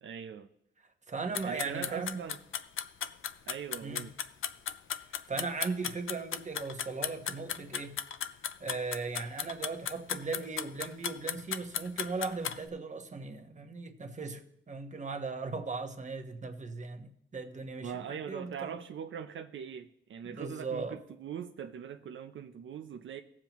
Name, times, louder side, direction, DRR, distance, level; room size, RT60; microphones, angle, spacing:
voice 1, 0.0-0.5 1.4-2.4 3.5-4.1 17.8-23.2, right 8 dB, 80° right, 0.6 m, -41 dB
voice 2, 1.1-2.2 3.8-4.1 5.1-8.0 8.6-14.4 14.7-18.8 20.2-21.0, right 4 dB, 35° right, 1.1 m, -38 dB
sound 1, 1.3-12.6, left 9 dB, 85° left, 0.5 m, -35 dB
17.5 x 7.4 x 3.0 m
wide cardioid pair, 100°, 20 cm